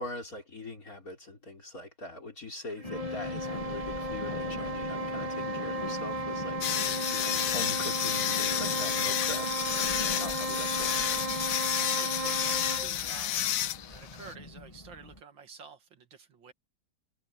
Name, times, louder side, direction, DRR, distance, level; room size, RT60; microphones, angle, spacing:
voice 1, 0.0-9.5 10.2-11.0, left 1 dB, 40° left, 4.4 m, -42 dB
sound 1, 2.7-13.0, right 1 dB, 15° right, 2.0 m, -35 dB
sound 2, 2.8-15.2, left 2 dB, 15° left, 2.1 m, -42 dB
sound 3, 6.6-14.3, left 11 dB, 65° left, 0.8 m, -31 dB
voice 2, 7.1-7.6 11.8-13.6 13.8-16.5, right 6 dB, 65° right, 2.7 m, -50 dB
omnidirectional pair, 2.2 m